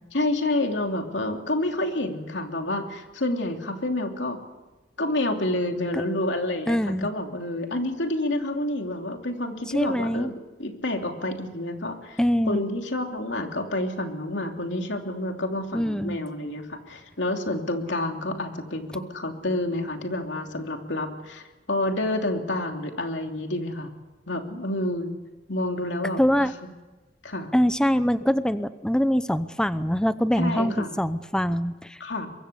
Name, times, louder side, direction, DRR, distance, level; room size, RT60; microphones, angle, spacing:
voice 1, 0.1-4.4 5.0-12.2 12.5-23.9 24.3-25.1 25.5-26.5 27.2-27.5 30.4-30.9 32.0-32.3, left 1 dB, 85° left, 3 dB, 3.0 m, -29 dB
voice 2, 6.7-7.1 9.7-10.3 12.2-12.6 15.7-16.2 26.2-26.5 27.5-32.0, equal, 5° left, 12 dB, 0.7 m, -23 dB
23.5 x 23.0 x 7.0 m, 1.1 s
head